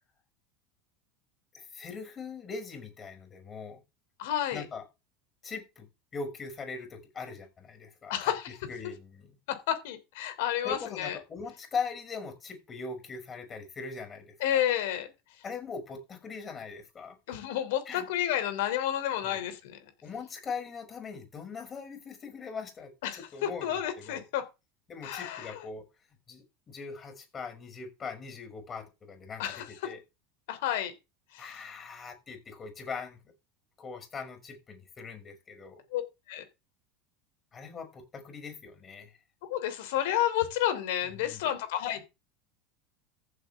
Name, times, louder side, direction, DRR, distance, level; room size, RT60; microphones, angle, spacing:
voice 1, 1.5-3.8 4.5-4.8 5.4-8.3 8.7-9.4 10.6-14.6 15.4-17.2 17.9-18.1 19.2-19.4 20.0-24.2 24.9-25.8 26.3-30.0 31.4-33.2 33.8-35.8 37.5-39.1 41.0-41.5, left 5 dB, 30° left, 6.3 m, -41 dB
voice 2, 4.2-4.6 8.1-8.6 9.5-11.2 14.4-15.1 17.3-19.8 23.0-24.4 25.0-25.6 29.4-29.7 30.5-30.9 31.3-31.5 35.9-36.0 36.3-36.4 39.5-42.1, left 11 dB, 70° left, 2.9 m, -30 dB
14.5 x 7.8 x 3.6 m
hypercardioid pair, 90°, 0 cm